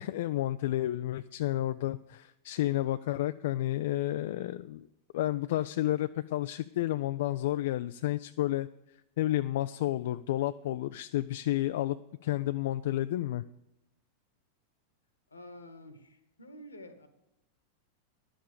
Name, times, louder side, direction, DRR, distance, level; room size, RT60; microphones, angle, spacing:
voice 1, 0.0-4.9 5.1-8.7 9.2-12.0 12.2-13.4, left 14 dB, 55° left, 12 dB, 0.3 m, -31 dB
voice 2, 15.3-17.1, left 1 dB, 75° left, 10 dB, 1.4 m, -49 dB
11.0 x 7.6 x 6.6 m, 0.88 s
figure-of-eight pair, 90°, 0 cm